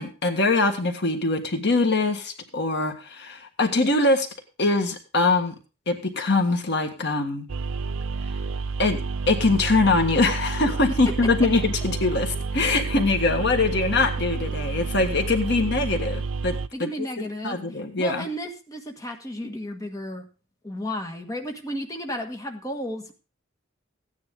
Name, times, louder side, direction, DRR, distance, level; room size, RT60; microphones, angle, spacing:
voice 1, 0.0-4.3 4.6-5.5 5.9-7.5 8.8-9.0 9.3-18.2, left 3 dB, 60° left, 6 dB, 1.6 m, -23 dB
sound 1, 7.5-16.7, right 4 dB, 90° right, 0.5 m, -29 dB
voice 2, 16.7-20.3 20.6-23.1, equal, 20° left, 3 dB, 1.5 m, -33 dB
15.0 x 9.8 x 3.7 m, 0.33 s
head